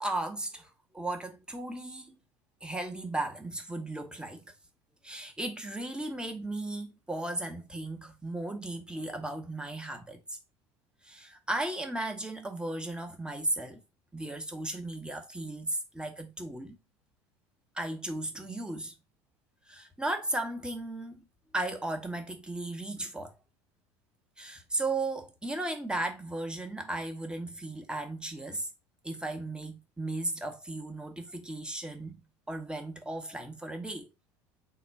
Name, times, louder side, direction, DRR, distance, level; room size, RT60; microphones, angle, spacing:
voice 1, 0.0-2.2 2.6-4.4 5.0-10.4 11.0-13.8 14.1-16.8 17.7-18.9 19.7-21.2 21.5-23.3 24.4-28.7 29.0-32.2 32.5-34.1, right 2 dB, 5° right, 0.9 m, -35 dB
3.9 x 2.2 x 4.5 m
figure-of-eight pair, 70°, 15 cm